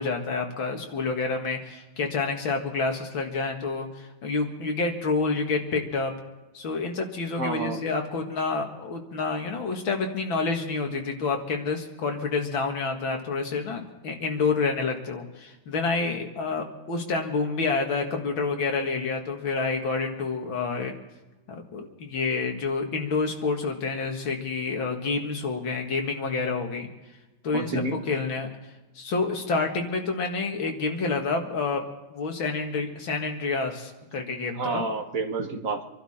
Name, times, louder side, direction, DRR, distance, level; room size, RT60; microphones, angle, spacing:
voice 1, 0.0-6.1 6.5-20.9 21.5-26.9 27.4-28.5 29.0-34.9, left 4 dB, 80° left, 3 dB, 2.7 m, -28 dB
voice 2, 7.4-7.8 27.5-28.0 34.5-35.8, right 3 dB, 45° right, 4 dB, 1.7 m, -29 dB
26.5 x 11.5 x 4.3 m, 1.1 s
omnidirectional pair, 2.1 m